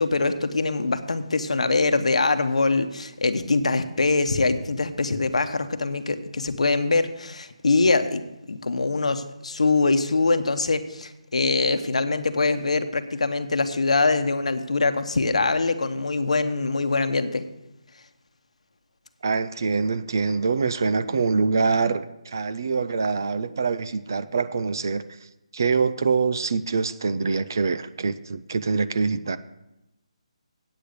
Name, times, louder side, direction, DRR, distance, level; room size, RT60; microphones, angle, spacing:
voice 1, 0.0-8.2 8.5-17.4, left 3 dB, 75° left, 9 dB, 1.0 m, -23 dB
voice 2, 19.2-25.0 25.5-29.4, right 4 dB, 35° right, 13 dB, 0.4 m, -24 dB
8.7 x 6.5 x 8.4 m, 0.91 s
hypercardioid pair, 180°, 4 cm